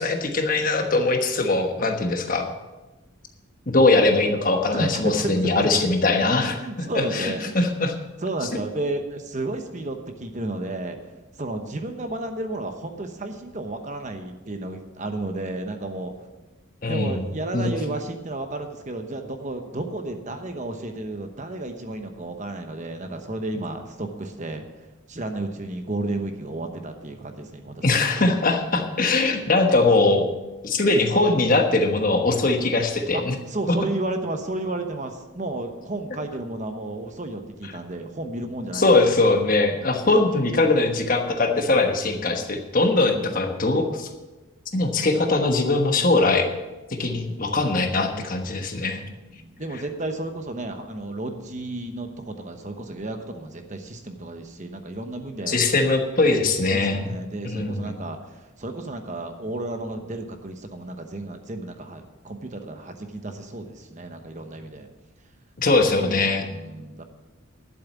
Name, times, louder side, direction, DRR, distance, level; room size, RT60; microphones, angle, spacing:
voice 1, 0.0-2.5 3.7-7.9 16.8-17.3 17.5-17.7 27.8-30.3 30.6-33.4 38.7-44.1 44.7-46.5 46.9-49.0 55.5-57.1 57.4-58.0 65.6-66.5, left 3 dB, 40° left, 4 dB, 1.2 m, -21 dB
voice 2, 4.7-5.7 6.2-7.6 8.2-11.0 11.4-16.1 16.9-24.6 25.1-28.4 33.1-33.2 33.5-39.0 49.3-55.6 56.7-64.9 65.8-67.0, right 2 dB, 35° right, 6 dB, 1.0 m, -32 dB
12.0 x 7.4 x 7.4 m, 1.1 s
head